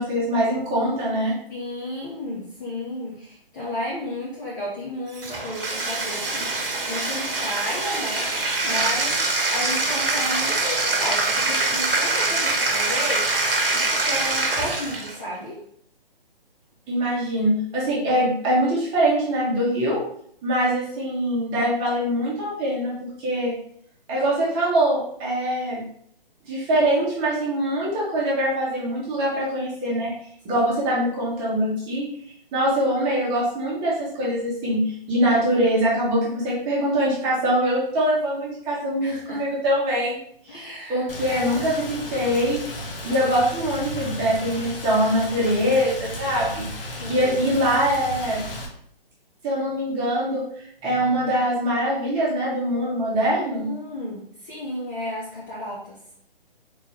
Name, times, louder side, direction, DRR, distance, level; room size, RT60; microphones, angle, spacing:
voice 1, 0.0-1.4 16.9-20.0 20.4-23.5 24.1-25.8 26.5-30.1 30.4-40.2 40.5-42.6 43.0-48.4 49.4-50.4 50.8-53.7, equal, 15° right, -5 dB, 1.1 m, -23 dB
voice 2, 1.5-9.2 9.5-13.2 13.7-15.6 30.5-30.6 39.0-39.5 40.5-41.8 46.9-47.5 53.4-56.0, left 1 dB, 20° left, -6 dB, 0.5 m, -33 dB
Bathtub (filling or washing), 5.1-15.2, right 3 dB, 70° right, 1.0 m, -24 dB
Rain, 41.1-48.7, left 1 dB, 70° left, 1.0 m, -34 dB
3.7 x 2.9 x 3.0 m, 0.66 s
figure-of-eight pair, 140°, 29 cm